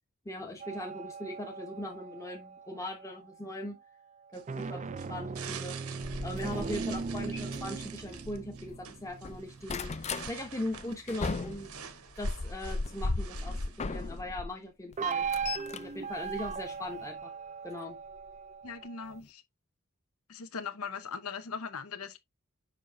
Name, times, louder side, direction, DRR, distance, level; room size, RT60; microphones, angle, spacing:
voice 1, 0.2-3.8 4.3-5.8 6.2-10.0 10.3-11.7 12.2-15.3 15.7-17.3 17.6-18.0, left 1 dB, 15° left, 0.9 m, -40 dB
sound 1, 0.6-3.2 4.3-11.1 15.0-19.2, right 5 dB, 35° right, 0.4 m, -39 dB
sound 2, 4.3-14.2, right 9 dB, 85° right, 1.0 m, -48 dB
sound 3, 6.0-8.8 9.1-10.3 10.7-14.5 14.9-17.1 18.2-18.4 18.8-18.9 19.1-19.2, left 3 dB, 30° left, 0.5 m, -37 dB
voice 2, 18.6-19.4 20.3-22.2, left 5 dB, 80° left, 0.9 m, -39 dB
6.9 x 5.4 x 2.7 m
head